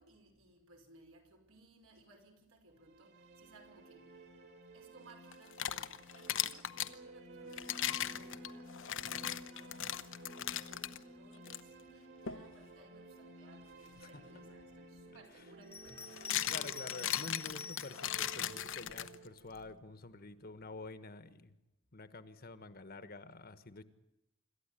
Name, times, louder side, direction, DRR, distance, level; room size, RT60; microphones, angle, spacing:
voice 1, 0.0-4.2 4.7-16.3, right 2 dB, 75° right, 5.5 m, -62 dB
sound 1, 2.7-20.7, right 1 dB, 55° right, 4.6 m, -54 dB
sound 2, 5.3-6.9 7.5-11.0 11.4-11.6 12.3-12.5 14.6-14.7 15.9-19.4, left 11 dB, 60° left, 0.9 m, -38 dB
Bell, 15.6-18.1 18.8-19.7, left 6 dB, 10° left, 1.0 m, -48 dB
voice 2, 16.5-21.5 21.9-23.8, left 3 dB, 45° left, 1.4 m, -48 dB
26.5 x 13.5 x 10.0 m
head